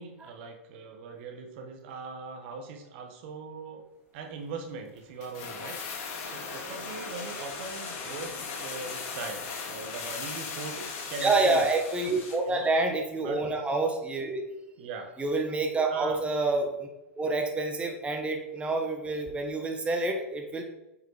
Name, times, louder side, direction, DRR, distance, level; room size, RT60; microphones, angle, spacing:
voice 1, 0.0-3.8 4.1-11.6 12.5-12.7 13.2-13.4 14.8-15.1 15.9-16.2, right 4 dB, 55° right, 4 dB, 1.5 m, -40 dB
sound 1, 5.2-12.5 12.8-12.9, left 5 dB, 55° left, 2.3 m, -38 dB
voice 2, 11.2-14.4 15.2-16.9 17.1-20.6, right 3 dB, 15° right, 3 dB, 1.4 m, -28 dB
8.1 x 5.7 x 4.8 m, 0.95 s
hypercardioid pair, 100°, 7 cm